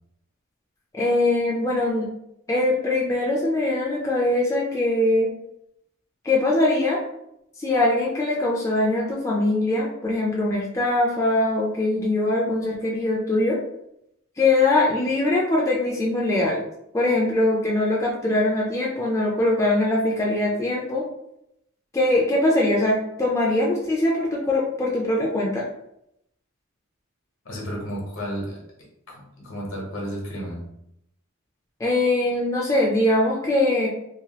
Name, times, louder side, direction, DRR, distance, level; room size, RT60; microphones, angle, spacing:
voice 1, 0.9-2.1 2.5-5.3 6.2-7.0 7.6-13.6 14.4-16.6 16.9-21.0 21.9-25.6 31.8-33.9, left 2 dB, 15° left, -4 dB, 0.4 m, -22 dB
voice 2, 27.4-30.8, equal, 70° left, -2 dB, 1.0 m, -33 dB
2.9 x 2.3 x 2.8 m, 0.79 s
head